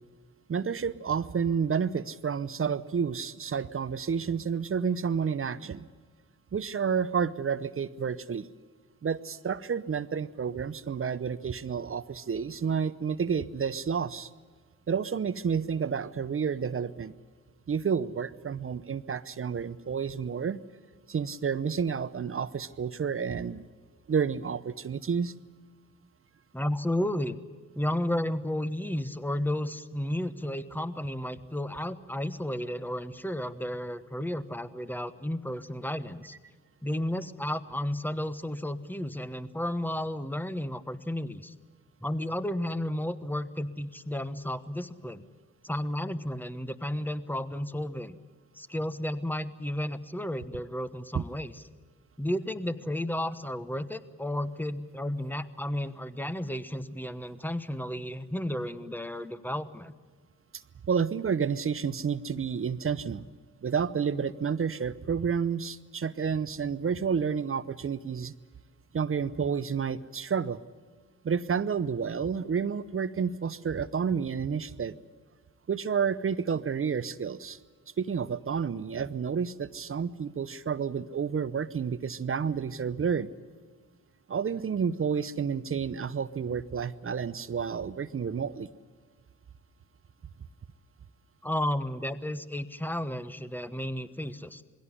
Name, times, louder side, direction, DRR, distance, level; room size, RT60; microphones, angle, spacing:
voice 1, 0.5-5.8 6.5-8.5 9.0-14.3 14.9-17.1 17.7-20.6 21.1-23.6 24.1-25.3 51.1-51.2 60.9-63.2 63.6-68.3 68.9-70.6 71.2-74.9 75.7-77.6 78.0-83.3 84.3-88.7, right 6 dB, 35° right, 15 dB, 0.8 m, -30 dB
voice 2, 26.5-27.4 27.7-36.3 36.8-41.5 42.0-45.3 45.6-48.1 48.5-51.6 52.2-59.9 91.4-94.6, left 1 dB, 5° left, 12 dB, 1.2 m, -33 dB
21.0 x 17.0 x 9.9 m, 1.5 s
supercardioid pair, 50°, 36 cm